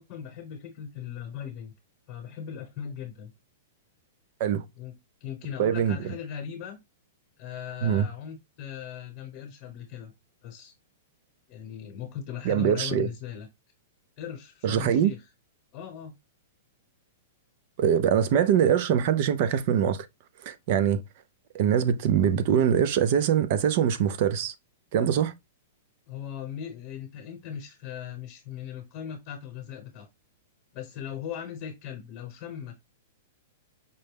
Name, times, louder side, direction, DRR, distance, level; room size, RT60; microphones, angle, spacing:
voice 1, 0.0-1.7 2.1-3.3 4.8-4.9 5.2-6.8 7.4-10.1 10.4-10.7 11.5-13.5 14.2-15.2 15.7-16.1 26.1-30.1 30.7-32.9, left 9 dB, 35° left, 1.0 m, -38 dB
voice 2, 5.6-6.0 7.8-8.1 12.4-13.1 14.6-15.1 17.8-20.1 20.4-21.0 21.5-24.5 24.9-25.3, right 8 dB, 45° right, 0.5 m, -23 dB
5.3 x 2.2 x 3.4 m
hypercardioid pair, 155°, 0 cm